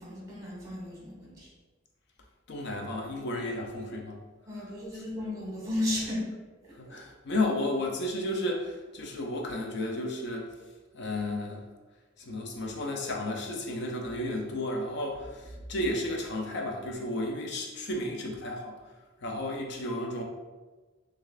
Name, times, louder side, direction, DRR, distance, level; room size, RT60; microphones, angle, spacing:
voice 1, 0.0-1.5 4.5-6.3 6.6-7.0, left 1 dB, 20° right, -5 dB, 1.2 m, -34 dB
voice 2, 2.5-4.2 6.8-10.5 10.9-11.6 12.2-18.8 19.2-20.2, left 1 dB, 60° left, 1 dB, 0.5 m, -33 dB
6.3 x 2.3 x 2.3 m, 1.3 s
head